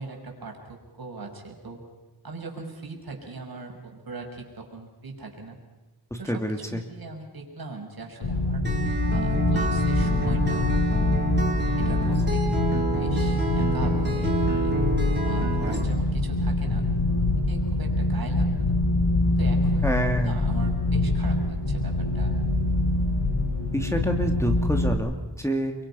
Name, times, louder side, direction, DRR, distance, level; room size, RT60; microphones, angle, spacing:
voice 1, 0.0-1.8 2.2-5.6 6.2-8.7 9.1-10.8 11.8-14.7 15.2-18.8 19.3-22.3, right 3 dB, 60° right, 2 dB, 5.9 m, -40 dB
voice 2, 6.1-6.8 19.8-20.4 23.7-25.7, equal, 5° left, 3 dB, 2.5 m, -27 dB
sound 1, 8.2-24.9, left 2 dB, 80° left, 5.8 m, -24 dB
Acoustic guitar, 8.6-15.8, right 2 dB, 25° right, 4.1 m, -28 dB
30.0 x 23.5 x 5.7 m, 1.2 s
wide cardioid pair, 80°, 42 cm